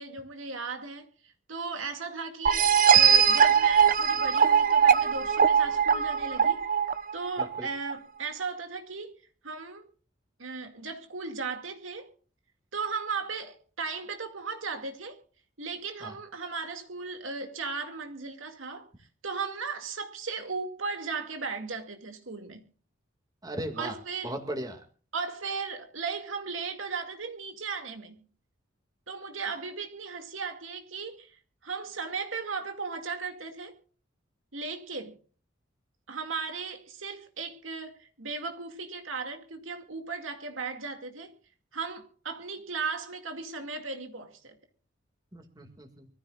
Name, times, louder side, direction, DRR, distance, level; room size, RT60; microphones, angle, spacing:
voice 1, 0.0-6.7 7.1-9.1 9.4-9.9 10.4-12.1 12.7-15.2 15.6-18.9 19.2-22.6 23.8-24.3 25.1-28.2 29.1-33.8 34.5-35.2 36.1-41.4 41.7-44.6, right 4 dB, 85° right, 2.3 m, -36 dB
sound 1, 2.5-7.9, right 7 dB, 45° right, 0.9 m, -21 dB
voice 2, 23.4-23.9 24.2-24.8 45.3-46.1, right 1 dB, 20° right, 2.2 m, -37 dB
24.5 x 15.0 x 2.4 m
head